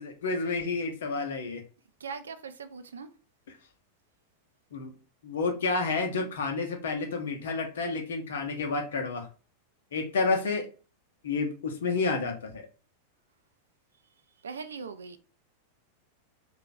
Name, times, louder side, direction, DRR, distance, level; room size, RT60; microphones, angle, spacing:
voice 1, 0.0-1.6 4.7-4.9 5.2-9.3 9.9-10.7 11.2-12.6, left 4 dB, 60° left, 0.8 m, -30 dB
voice 2, 2.0-3.1 14.4-15.2, right 5 dB, 70° right, 0.4 m, -40 dB
3.3 x 2.3 x 3.8 m
figure-of-eight pair, 90°, 0 cm